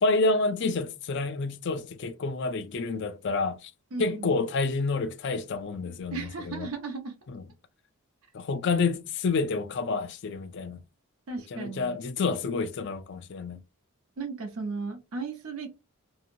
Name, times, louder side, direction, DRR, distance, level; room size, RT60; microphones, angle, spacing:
voice 1, 0.0-3.7 4.0-6.7 7.3-7.4 8.3-10.8 11.5-13.6, left 3 dB, 50° left, 0.4 m, -29 dB
voice 2, 3.9-4.4 6.1-7.1 11.3-12.0 14.2-15.7, right 4 dB, 75° right, 0.7 m, -35 dB
2.7 x 2.6 x 2.7 m
head